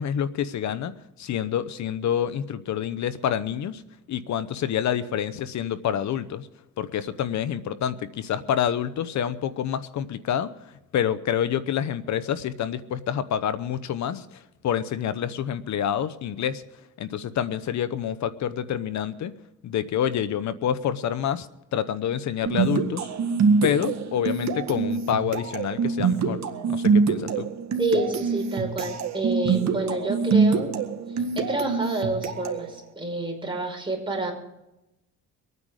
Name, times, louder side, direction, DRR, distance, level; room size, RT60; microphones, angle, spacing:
voice 1, 0.0-3.8 4.1-6.5 6.8-10.5 10.9-16.6 17.0-19.3 19.6-21.5 21.7-23.1 23.6-26.4 26.7-27.5, left 9 dB, 65° left, 14 dB, 0.9 m, -27 dB
sound 1, 22.5-32.7, right 5 dB, 60° right, 1.8 m, -25 dB
voice 2, 27.8-30.7 31.1-34.3, right 2 dB, 15° right, 1 dB, 5.5 m, -28 dB
24.0 x 9.6 x 4.9 m, 0.93 s
cardioid pair, 90°, 30 cm